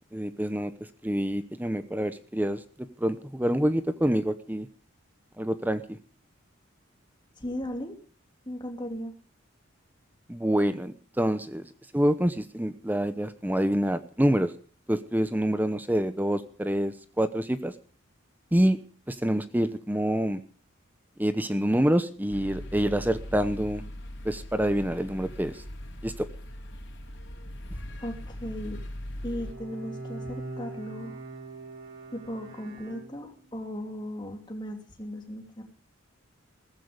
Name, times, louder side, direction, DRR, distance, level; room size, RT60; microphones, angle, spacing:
voice 1, 0.1-0.7 1.0-2.6 3.0-4.7 5.4-6.0 10.3-11.7 11.9-14.5 14.9-17.7 18.5-18.8 19.1-20.4 21.2-23.8 24.2-25.6 26.0-26.3, equal, 10° right, 12 dB, 0.8 m, -26 dB
voice 2, 7.4-7.9 8.4-9.1 28.0-28.8 29.2-31.2 32.1-35.6, equal, 20° left, 3 dB, 2.9 m, -37 dB
sound 1, 22.3-29.5, left 1 dB, 60° left, 3.6 m, -40 dB
Bowed string instrument, 29.2-33.6, right 2 dB, 80° right, 7.8 m, -42 dB
15.5 x 14.5 x 5.2 m, 0.40 s
head